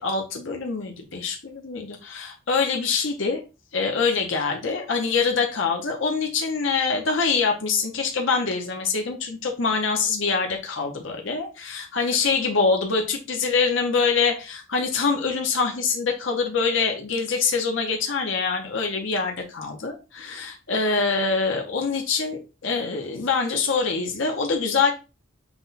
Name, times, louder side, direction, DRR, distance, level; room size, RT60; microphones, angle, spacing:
voice 1, 0.0-3.4 3.7-24.9, left 4 dB, 65° left, 3 dB, 0.7 m, -24 dB
5.9 x 2.2 x 3.9 m, 0.30 s
head